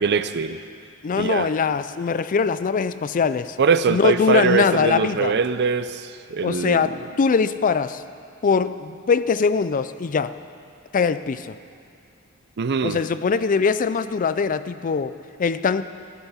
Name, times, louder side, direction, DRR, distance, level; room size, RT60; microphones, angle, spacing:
voice 1, 0.0-0.6 1.2-1.5 3.6-6.9 12.6-13.0, right 5 dB, 50° right, 12 dB, 0.5 m, -22 dB
voice 2, 1.0-3.6 3.9-5.3 6.4-8.0 8.4-10.4 10.9-11.5 12.8-15.8, left 5 dB, 40° left, 14 dB, 0.4 m, -22 dB
14.0 x 13.0 x 5.6 m, 2.4 s
head